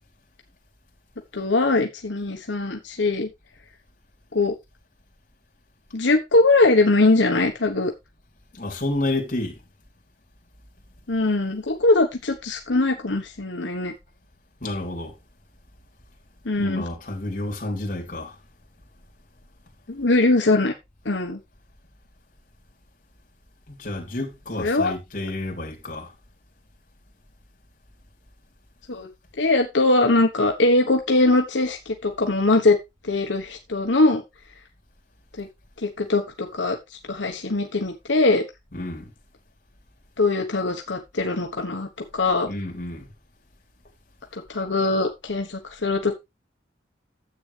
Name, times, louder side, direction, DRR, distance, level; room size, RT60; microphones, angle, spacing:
voice 1, 1.3-3.3 4.3-4.5 5.9-7.9 11.1-13.9 16.4-16.8 19.9-20.7 21.0-21.4 24.6-24.9 28.9-29.1 29.4-32.8 33.0-34.2 35.4-35.5 35.8-38.4 40.2-42.5 44.3-46.2, left 2 dB, 85° left, 1.2 m, -21 dB
voice 2, 8.5-9.6 14.6-15.1 16.6-18.4 23.7-26.1 38.7-39.1 42.4-43.1, left 2 dB, 45° left, 3.4 m, -30 dB
10.5 x 8.0 x 3.4 m
head